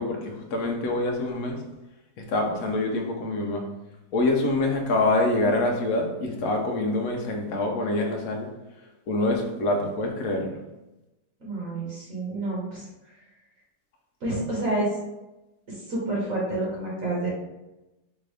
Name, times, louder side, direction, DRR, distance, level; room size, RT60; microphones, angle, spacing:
voice 1, 0.0-1.6 2.2-3.6 4.1-8.5 9.1-10.6, left 2 dB, 60° left, 1 dB, 1.1 m, -25 dB
voice 2, 11.4-12.8 14.2-14.9 15.7-17.3, right 2 dB, 55° right, -5 dB, 1.5 m, -29 dB
4.5 x 2.6 x 3.3 m, 1.0 s
omnidirectional pair, 1.8 m